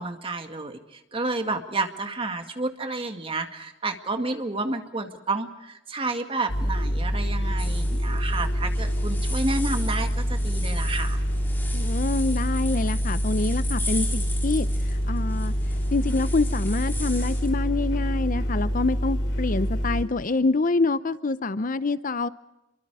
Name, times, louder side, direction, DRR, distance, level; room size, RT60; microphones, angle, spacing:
voice 1, 0.0-11.2, right 2 dB, 30° right, 6 dB, 2.1 m, -30 dB
sound 1, 6.5-20.0, equal, 65° left, 3.9 m, -26 dB
sound 2, 7.6-17.5, left 2 dB, 10° left, 4.6 m, -38 dB
voice 2, 11.7-15.5 15.9-22.3, left 3 dB, 45° left, 15 dB, 0.7 m, -26 dB
28.5 x 23.5 x 4.8 m, 0.95 s
head